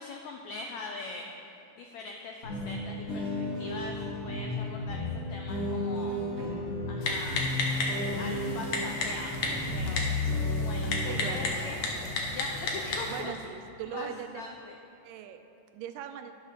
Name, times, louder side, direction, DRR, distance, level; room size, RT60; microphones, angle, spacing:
voice 1, 0.0-1.5 1.7-3.3 3.6-6.1 6.9-7.5 8.2-11.8 12.3-13.3 13.9-14.7, left 4 dB, 90° left, 2 dB, 1.6 m, -42 dB
sound 1, 2.4-11.9, left 2 dB, 35° left, 1.6 m, -33 dB
sound 2, 6.4-7.1 8.1-8.9 9.5-10.3 11.1-12.1, right 2 dB, 40° right, 1.4 m, -45 dB
Typing, 7.0-13.2, left 2 dB, 60° left, 1.5 m, -33 dB
voice 2, 11.1-11.8 13.1-14.4 15.0-15.4 15.7-16.3, right 9 dB, 80° right, 8 dB, 2.2 m, -40 dB
12.0 x 10.5 x 3.7 m, 2.8 s
omnidirectional pair, 3.9 m